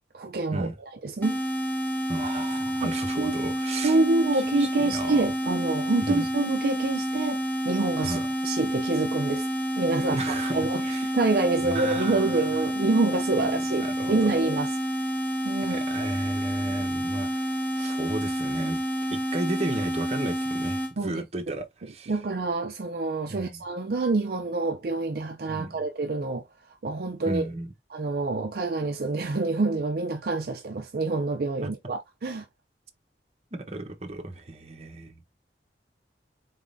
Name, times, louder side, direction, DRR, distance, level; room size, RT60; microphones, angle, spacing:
voice 1, 0.1-0.7 1.0-1.4 2.8-3.3 3.8-9.5 9.8-10.2 10.5-10.8 11.1-14.7 15.4-15.8 21.0-21.2 22.1-26.4 26.8-27.5 27.9-32.4, right 3 dB, 55° right, 0.5 m, -27 dB
sound 1, 1.2-20.9, equal, 10° left, 0.9 m, -29 dB
voice 2, 2.1-4.0 4.3-5.3 6.0-6.2 8.0-8.3 10.0-11.1 11.6-12.7 13.4-14.3 15.7-18.8 19.1-22.1 23.3-23.6 25.5-25.7 27.2-27.7 31.6-31.7 33.5-35.3, right 2 dB, 35° right, 0.8 m, -34 dB
4.1 x 3.6 x 2.5 m
head